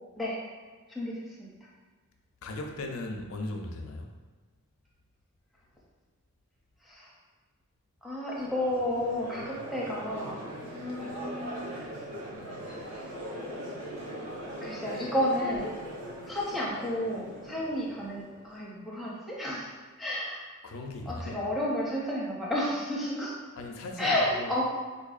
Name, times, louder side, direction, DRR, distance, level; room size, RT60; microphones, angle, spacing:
voice 1, 0.9-1.5 6.8-7.1 8.0-10.4 10.7-11.7 14.6-15.7 16.3-19.7 20.0-20.4 21.1-23.3 24.0-24.6, left 1 dB, ahead, -7 dB, 0.6 m, -31 dB
voice 2, 2.4-4.1 20.6-21.5 23.6-24.6, left 2 dB, 70° left, 3 dB, 0.4 m, -38 dB
Crowd, 8.3-18.5, equal, 80° right, 0.7 m, -40 dB
4.3 x 2.6 x 2.4 m, 1.4 s
head